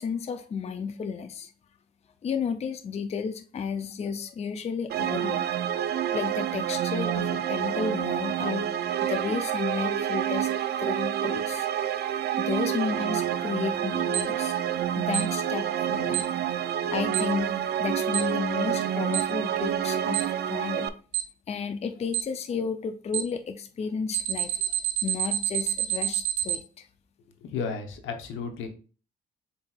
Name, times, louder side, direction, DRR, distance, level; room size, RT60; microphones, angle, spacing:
voice 1, 0.0-1.5 2.2-5.4 6.1-8.7 9.0-10.5 10.8-11.7 12.4-21.0 21.5-24.8 25.0-26.9, left 6 dB, 35° left, 8 dB, 0.4 m, -33 dB
sound 1, 4.9-20.9, right 10 dB, 55° right, 0.4 m, -28 dB
Alarm, 14.1-14.2 15.1-15.2 16.1-16.2 17.1-17.2 18.1-18.2 19.1-19.2 20.1-20.2 21.1-21.2 22.1-22.2 23.1-23.2 24.1-26.6, right 12 dB, 80° right, 0.8 m, -27 dB
voice 2, 27.5-28.7, left 5 dB, 85° left, 5 dB, 0.9 m, -33 dB
7.2 x 2.8 x 2.3 m, 0.38 s
cardioid pair, 90°, 20 cm